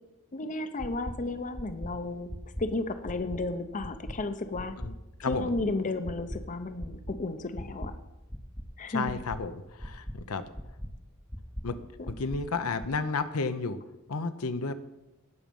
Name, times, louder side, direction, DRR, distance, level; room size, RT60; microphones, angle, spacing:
voice 1, 0.3-4.7 5.3-7.9 8.8-9.0 12.0-12.1, left 2 dB, 35° left, 10 dB, 0.7 m, -33 dB
sound 1, 0.8-1.1 1.5-1.9 2.3-2.6 3.0-3.4 3.8-4.1 4.5-4.9 5.3-5.7 6.0-6.4 6.8-7.1 7.5-7.9 8.3-8.6 9.0-9.4 9.8-10.1 10.5-10.9 11.3-11.6 12.0-12.4 12.8-12.9, equal, 5° left, 0.8 m, -38 dB
voice 2, 5.2-5.5 8.9-10.5 11.6-11.8 12.1-13.8 14.1-14.7, left 4 dB, 80° left, 10 dB, 0.8 m, -32 dB
17.5 x 6.3 x 5.3 m, 0.98 s
head